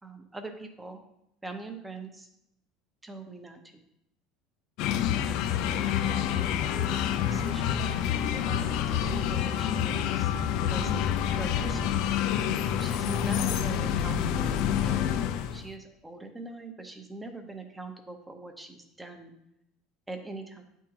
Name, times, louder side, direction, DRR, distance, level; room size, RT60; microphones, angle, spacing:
voice 1, 0.0-1.0 1.4-2.3 3.0-3.8 5.7-7.8 8.3-11.0 11.3-12.1 12.8-15.1 15.5-19.3 20.1-20.6, right 2 dB, 10° right, 5 dB, 0.8 m, -42 dB
sound 1, 4.8-15.6, left 9 dB, 65° left, 0.4 m, -28 dB
9.5 x 3.6 x 2.9 m, 0.82 s
supercardioid pair, 130°, 0 cm